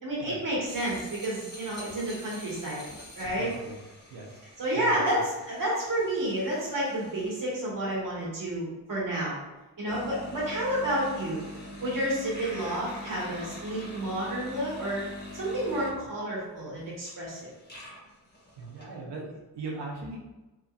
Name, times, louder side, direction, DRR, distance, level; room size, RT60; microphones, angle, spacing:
voice 1, 0.0-2.8 3.1-3.5 4.6-9.4 9.8-11.4 11.8-15.0 15.3-17.5, right 1 dB, 50° right, -6 dB, 1.4 m, -30 dB
sound 1, 0.7-7.4 9.9-16.1 16.7-16.8 17.0-18.9, left 1 dB, 25° left, 0.9 m, -44 dB
voice 2, 3.3-3.8 4.1-4.4 4.7-5.0 18.6-20.2, right 3 dB, 80° right, -3 dB, 0.8 m, -39 dB
3.0 x 2.5 x 2.4 m, 1.1 s
cardioid pair, 65°, 40 cm